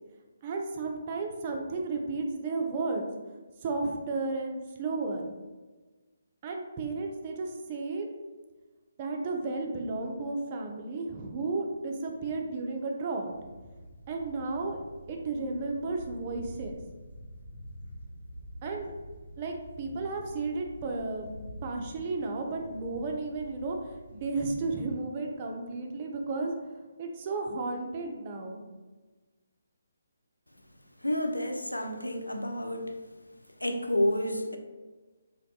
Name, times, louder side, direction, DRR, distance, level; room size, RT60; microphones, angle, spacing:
voice 1, 0.4-3.0 3.6-5.2 6.4-8.1 9.0-13.3 14.1-14.8 15.1-16.8 18.6-18.9 19.4-21.3 21.6-28.6 31.9-32.0, right 3 dB, 30° right, 2 dB, 0.3 m, -33 dB
sound 1, 13.3-24.6, equal, 65° left, 1.1 m, -47 dB
voice 2, 31.0-33.0 33.6-34.6, left 1 dB, 85° left, 4 dB, 0.3 m, -30 dB
2.2 x 2.1 x 2.7 m, 1.3 s
figure-of-eight pair, 140°, 0 cm